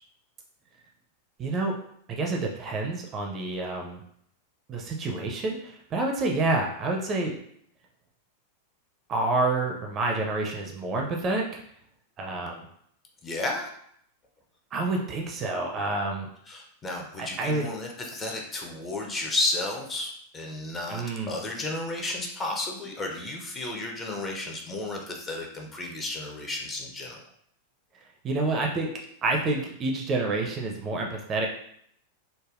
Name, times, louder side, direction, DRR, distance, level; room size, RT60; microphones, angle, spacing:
voice 1, 1.4-1.8 2.1-4.0 4.7-7.3 9.1-11.5 12.2-12.7 14.7-16.3 17.2-17.7 20.9-21.4 28.2-28.9 29.2-31.5, right 2 dB, 30° right, 1 dB, 0.4 m, -28 dB
voice 2, 13.2-13.7 16.5-27.2, left 2 dB, 20° left, 0 dB, 0.5 m, -33 dB
3.3 x 2.2 x 2.4 m, 0.69 s
figure-of-eight pair, 90°, 0 cm